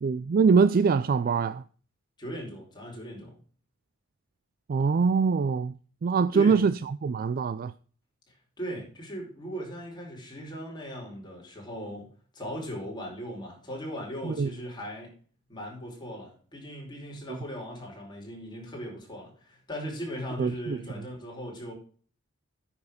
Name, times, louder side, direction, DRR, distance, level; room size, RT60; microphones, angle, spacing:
voice 1, 0.0-1.6 4.7-5.7 6.0-6.7 7.0-7.7 14.2-14.5 20.4-20.8, right 5 dB, 45° right, 0.4 m, -23 dB
voice 2, 2.2-3.3 6.3-6.6 8.3-15.1 15.5-21.7, equal, 20° left, 4.7 m, -38 dB
9.5 x 7.2 x 5.1 m
head